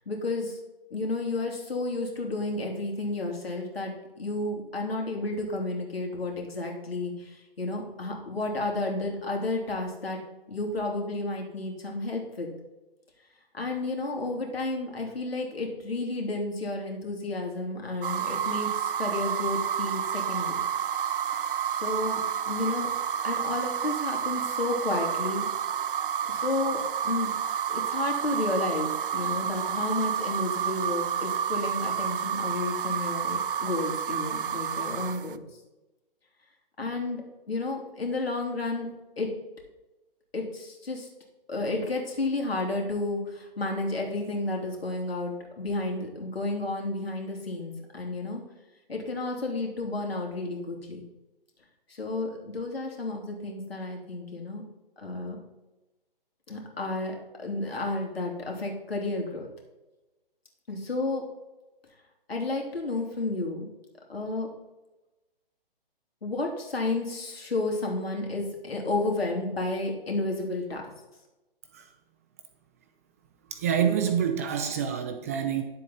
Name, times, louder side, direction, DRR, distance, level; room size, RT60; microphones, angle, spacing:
voice 1, 0.1-0.6 0.9-10.2 10.5-12.5 13.5-20.6 21.7-22.9 23.2-25.4 26.3-27.3 27.7-35.4 36.8-37.2 37.5-38.9 39.2-39.3 40.3-41.1 41.5-48.4 48.9-51.0 51.9-54.6 55.0-55.4 56.5-59.5 60.7-61.3 62.3-63.7 64.1-64.5 66.2-70.8, left 2 dB, 80° left, 0 dB, 3.0 m, -31 dB
sound 1, 18.0-35.4, right 8 dB, 65° right, 0.6 m, -30 dB
voice 2, 73.5-75.6, right 8 dB, 15° right, 6 dB, 0.4 m, -27 dB
10.0 x 7.4 x 4.2 m, 1.0 s
figure-of-eight pair, 135°, 30 cm